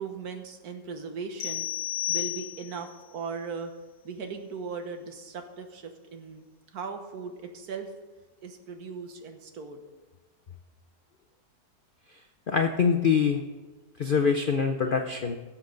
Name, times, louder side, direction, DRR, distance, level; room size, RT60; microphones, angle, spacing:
voice 1, 0.0-1.7 2.1-3.7 4.0-6.5 6.7-7.9 8.4-9.8, right 5 dB, 70° right, 6 dB, 1.6 m, -38 dB
sound 1, 1.4-2.9, left 13 dB, 90° left, 1.4 m, -32 dB
voice 2, 12.5-13.4 14.0-15.3, left 6 dB, 60° left, 5 dB, 0.5 m, -24 dB
17.5 x 7.4 x 3.9 m, 1.2 s
omnidirectional pair, 1.7 m